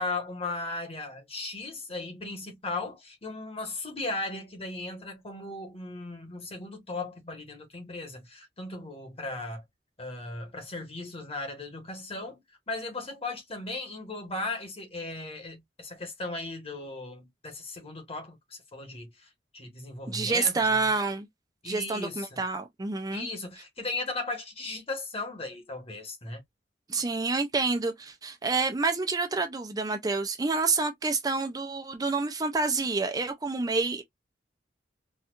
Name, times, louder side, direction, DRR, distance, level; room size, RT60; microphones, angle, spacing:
voice 1, 0.0-9.6 10.0-20.9 21.6-22.4 23.1-26.4, left 2 dB, 35° left, 1.4 m, -37 dB
voice 2, 20.1-21.3 21.6-23.3 26.9-34.0, right 3 dB, 20° right, 0.5 m, -28 dB
4.2 x 2.4 x 2.4 m
head